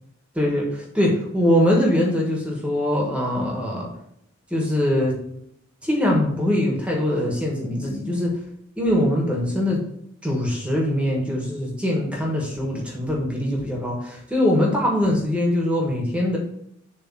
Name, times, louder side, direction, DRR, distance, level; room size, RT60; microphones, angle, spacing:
voice 1, 0.3-3.9 4.5-5.2 5.8-8.4 8.8-9.8 10.2-16.4, left 1 dB, 5° right, -2 dB, 1.5 m, -22 dB
7.3 x 3.4 x 6.2 m, 0.72 s
head